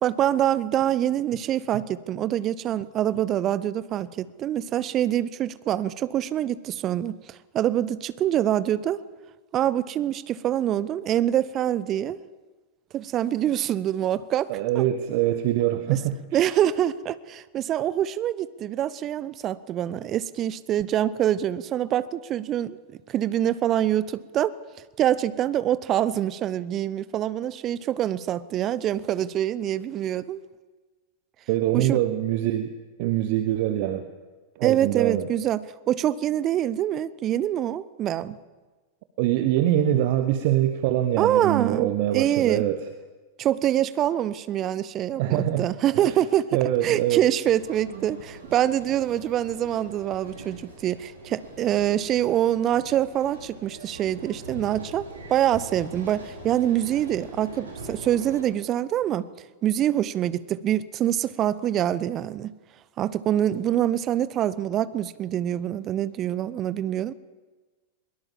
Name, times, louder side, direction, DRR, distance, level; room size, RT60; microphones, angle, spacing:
voice 1, 0.0-9.0 9.5-12.2 12.9-14.5 14.7-14.8 16.3-22.8 23.1-24.5 25.0-30.4 31.7-32.0 34.6-38.4 41.2-41.9 42.1-42.6 43.4-46.5 46.8-59.3 59.6-62.5 63.0-67.1, right 11 dB, 30° right, 17 dB, 0.9 m, -25 dB
voice 2, 14.5-16.5 31.5-32.7 33.0-34.1 34.5-35.3 39.2-42.8 45.2-45.7 45.9-46.1 46.5-47.3 47.9-48.2, right 12 dB, 50° right, 9 dB, 1.3 m, -24 dB
sound 1, 47.4-58.4, right 2 dB, 75° right, 6.3 m, -43 dB
22.0 x 22.0 x 7.4 m, 1.3 s
figure-of-eight pair, 90°, 0 cm